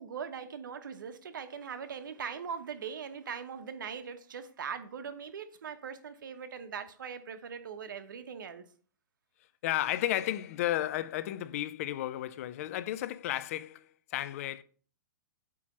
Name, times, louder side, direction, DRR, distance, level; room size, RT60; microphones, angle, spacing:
voice 1, 0.0-8.6, right 7 dB, 85° right, 1.1 m, -41 dB
voice 2, 9.6-14.6, left 13 dB, 45° left, 0.5 m, -33 dB
8.4 x 3.1 x 5.9 m
hypercardioid pair, 155°, 10 cm